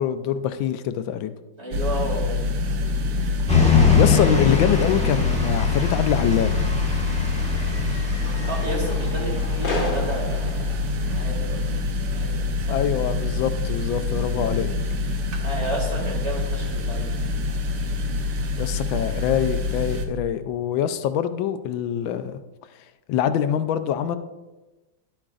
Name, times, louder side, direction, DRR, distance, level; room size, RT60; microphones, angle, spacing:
voice 1, 0.0-1.3 4.0-6.6 12.7-14.7 18.5-22.4 22.8-24.2, left 9 dB, 90° left, 11 dB, 1.4 m, -24 dB
voice 2, 1.6-2.3 8.5-10.5 11.1-11.7 12.1-12.4 12.7-12.8 15.4-17.1, right 1 dB, 35° right, -2 dB, 2.4 m, -31 dB
sound 1, 1.7-20.0, left 3 dB, 60° right, 1.0 m, -26 dB
sound 2, 3.5-9.6, left 6 dB, 5° left, 1.2 m, -22 dB
sound 3, 6.4-11.7, left 1 dB, 50° left, 2.1 m, -36 dB
11.5 x 8.7 x 2.5 m, 1.1 s
omnidirectional pair, 2.1 m